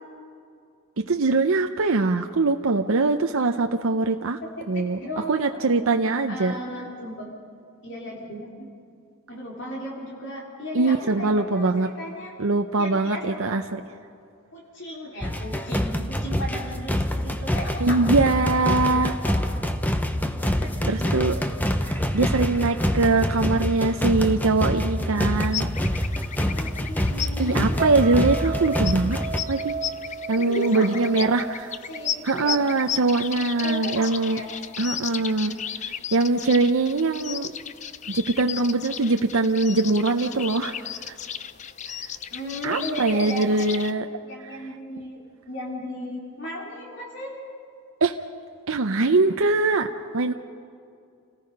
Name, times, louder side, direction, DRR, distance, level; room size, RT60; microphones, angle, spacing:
voice 1, 1.1-4.4 4.7-5.0 5.3-6.5 10.7-11.9 12.4-13.8 17.8-19.1 20.9-21.3 21.8-25.7 27.4-29.2 29.5-29.7 30.3-31.4 32.2-34.4 34.8-35.5 35.8-37.5 38.1-40.7 41.1-41.2 41.9-42.1 42.6-44.0 48.0-48.2 48.7-49.9 50.1-50.3, right 3 dB, 70° right, 5 dB, 0.7 m, -22 dB
voice 2, 4.4-5.6 6.3-7.3 7.8-8.6 9.3-12.3 12.7-13.6 14.5-19.4 20.4-21.2 26.4-27.8 30.4-31.3 31.9-32.6 33.6-34.5 35.4-35.6 42.3-43.6 44.2-45.2 45.5-47.3, left 1 dB, 55° left, -4 dB, 3.6 m, -36 dB
sound 1, 15.2-29.4, equal, 10° left, 0.8 m, -26 dB
sound 2, 25.4-43.9, left 9 dB, 30° left, 0.5 m, -35 dB
sound 3, 27.8-33.1 33.4-33.7, right 5 dB, 40° right, 2.7 m, -35 dB
29.0 x 18.5 x 5.4 m, 2.4 s
head